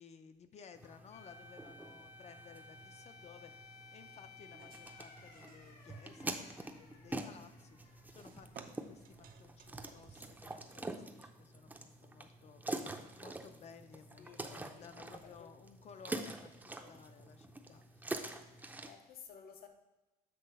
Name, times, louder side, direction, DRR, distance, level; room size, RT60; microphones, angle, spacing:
voice 1, 0.0-18.2, left 6 dB, 40° left, 0.6 m, -57 dB
sound 1, 0.7-18.9, right 2 dB, 10° right, 0.6 m, -46 dB
sound 2, 1.1-9.8 10.1-10.2 15.1-15.7, left 3 dB, 80° left, 1.3 m, -58 dB
sound 3, 4.6-10.6, right 8 dB, 60° right, 0.6 m, -62 dB
voice 2, 14.2-15.5 18.8-19.7, left 7 dB, 65° left, 0.9 m, -55 dB
7.8 x 3.2 x 5.3 m
cardioid pair, 110°, 17 cm